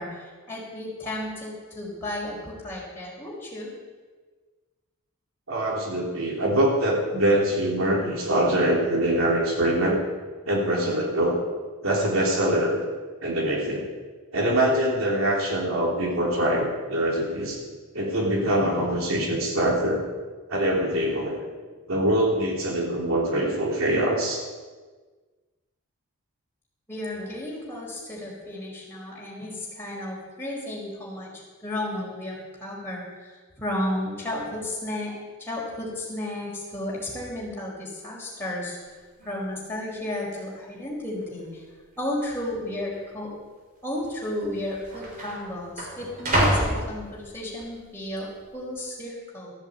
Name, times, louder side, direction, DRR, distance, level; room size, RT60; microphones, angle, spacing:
voice 1, 0.0-3.7 26.9-38.8 39.2-41.6 42.0-43.3 43.8-49.5, left 1 dB, 10° left, -5 dB, 4.6 m, -33 dB
voice 2, 5.5-10.0 10.4-11.4 11.8-12.8 13.2-13.9 14.3-17.6 17.9-20.0 20.5-21.5 21.9-24.4, right 1 dB, 70° right, -2 dB, 3.3 m, -24 dB
sound 1, 38.9-39.0 39.2-39.6 40.3-40.4 41.2-41.7 41.9-42.1 42.9-43.1 44.1-44.2 44.4-47.6 48.1-48.5, right 1 dB, 40° right, 3.2 m, -28 dB
14.0 x 8.1 x 8.4 m, 1.4 s
head